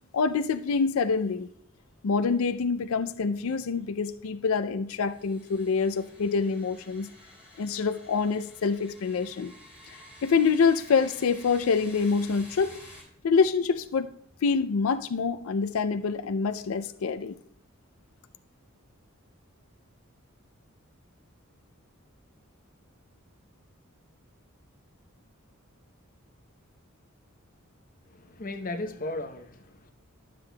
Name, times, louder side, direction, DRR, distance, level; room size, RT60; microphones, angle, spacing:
voice 1, 0.1-1.5 2.0-7.1 7.6-9.5 9.9-12.7 13.2-14.1 14.4-17.4, left 5 dB, 70° left, 11 dB, 0.4 m, -26 dB
sound 1, 5.0-13.0, left 1 dB, 5° right, 2.6 m, -51 dB
voice 2, 28.1-29.9, left 2 dB, 40° left, 6 dB, 0.8 m, -36 dB
12.0 x 7.5 x 2.2 m, 0.70 s
head